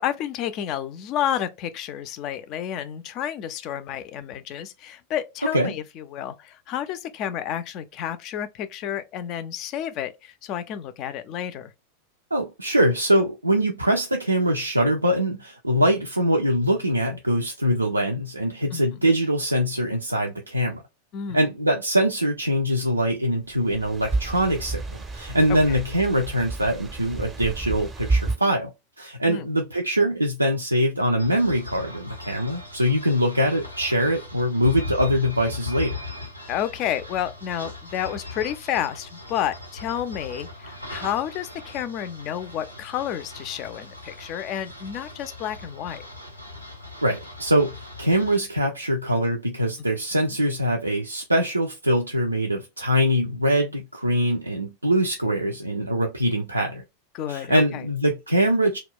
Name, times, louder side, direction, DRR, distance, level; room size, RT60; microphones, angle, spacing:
voice 1, 0.0-11.7 18.7-18.8 21.1-21.4 25.7-25.8 29.3-29.5 36.5-46.0 50.2-50.3 57.1-57.8, left 10 dB, 40° left, 0.3 m, -30 dB
voice 2, 12.3-20.8 21.3-24.8 25.1-28.7 29.0-35.9 47.0-56.8 57.3-58.8, equal, 85° right, 0.3 m, -23 dB
sound 1, 23.6-28.4, right 3 dB, 15° right, 0.5 m, -30 dB
sound 2, 31.2-48.4, left 2 dB, 90° left, 0.6 m, -39 dB
2.2 x 2.1 x 3.5 m
figure-of-eight pair, 90°, 0 cm